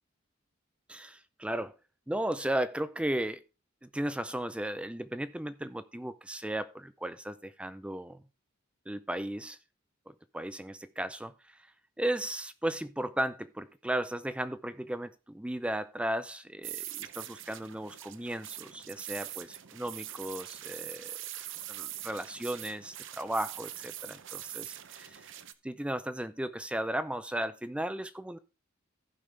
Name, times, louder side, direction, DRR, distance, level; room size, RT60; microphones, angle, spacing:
voice 1, 0.9-1.7 2.1-3.4 3.9-8.2 8.9-9.6 10.1-11.6 12.0-21.2 21.7-25.3 25.6-28.4, right 1 dB, 5° right, 0.4 m, -35 dB
sound 1, 16.6-25.5, right 12 dB, 65° right, 0.7 m, -43 dB
15.5 x 5.4 x 3.3 m
head